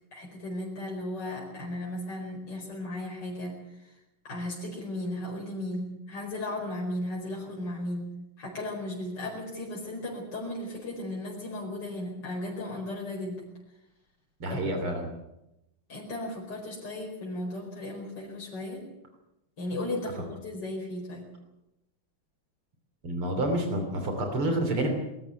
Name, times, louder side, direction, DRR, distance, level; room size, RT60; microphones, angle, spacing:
voice 1, 0.1-4.0 4.2-8.1 8.4-13.5 14.5-14.6 15.9-18.9 19.6-21.3, left 1 dB, 55° left, -3 dB, 5.4 m, -35 dB
voice 2, 14.4-15.1 23.0-24.9, right 1 dB, 85° right, 4 dB, 4.1 m, -28 dB
21.5 x 14.0 x 9.4 m, 0.91 s
omnidirectional pair, 2.3 m